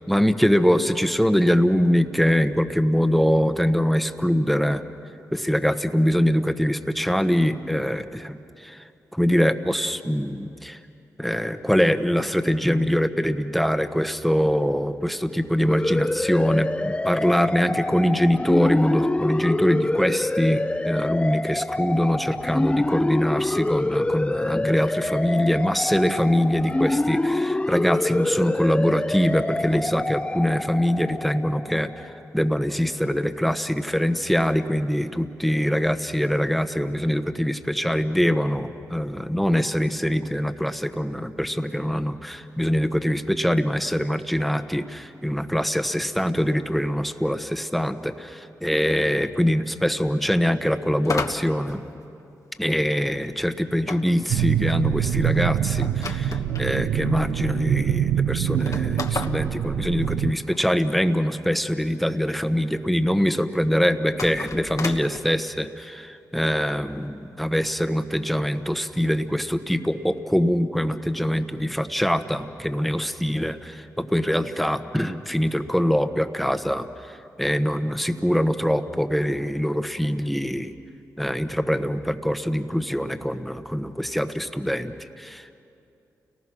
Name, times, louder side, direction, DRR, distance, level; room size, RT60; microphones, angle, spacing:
voice 1, 0.1-4.8 5.3-8.8 9.1-10.8 11.2-51.8 52.6-80.8 81.2-85.6, equal, ahead, 8 dB, 1.3 m, -23 dB
sound 1, 15.7-32.1, left 2 dB, 15° left, 0.5 m, -26 dB
sound 2, 51.0-52.6 53.9-56.7 57.4-57.5 57.7-57.8 58.5-60.6 64.1-65.2, left 4 dB, 55° left, 1.3 m, -33 dB
sound 3, 54.3-60.3, right 10 dB, 90° right, 0.4 m, -24 dB
29.5 x 19.0 x 6.2 m, 2.6 s
supercardioid pair, 45°, 7 cm